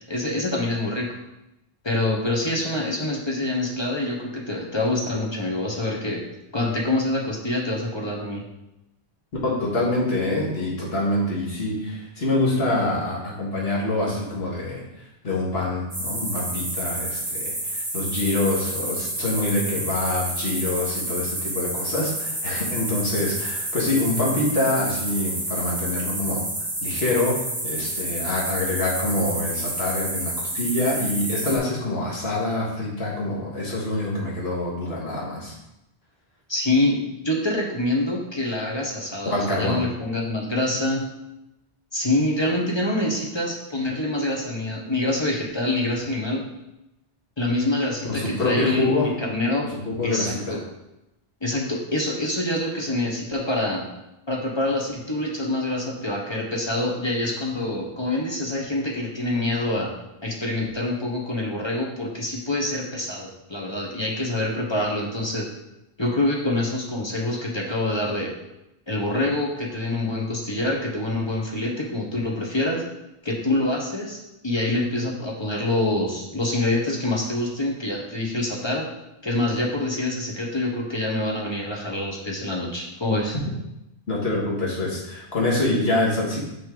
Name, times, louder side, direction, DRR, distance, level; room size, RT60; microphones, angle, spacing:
voice 1, 0.1-1.1 1.8-6.2 6.5-8.4 36.5-41.0 41.9-46.4 47.4-49.7 50.0-50.6 51.4-53.9 54.3-59.9 60.2-65.5 66.0-68.3 68.9-72.8 73.2-78.9 79.2-83.3, left 1 dB, 25° left, -1 dB, 1.0 m, -26 dB
voice 2, 9.4-14.8 15.2-26.4 26.8-35.5 39.3-39.8 48.1-49.1 49.7-50.6 84.1-86.4, left 2 dB, 70° left, -4 dB, 1.9 m, -25 dB
sound 1, 15.9-31.6, right 1 dB, 35° right, 1.5 m, -29 dB
6.0 x 5.1 x 3.8 m, 0.89 s
omnidirectional pair, 1.1 m